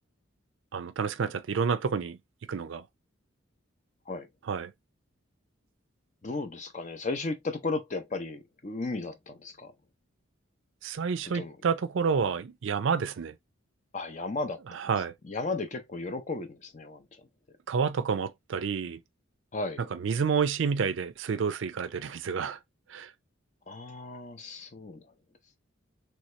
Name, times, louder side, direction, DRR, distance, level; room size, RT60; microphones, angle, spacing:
voice 1, 0.7-2.2 2.5-2.8 4.5-4.7 10.8-13.3 14.7-15.1 17.7-19.0 19.9-22.6 22.9-23.1, right 6 dB, 70° right, 0.4 m, -29 dB
voice 2, 6.2-9.7 11.3-11.6 13.9-14.8 15.2-17.1 19.5-19.8 23.7-25.0, left 3 dB, 35° left, 0.6 m, -35 dB
3.2 x 2.8 x 3.1 m
head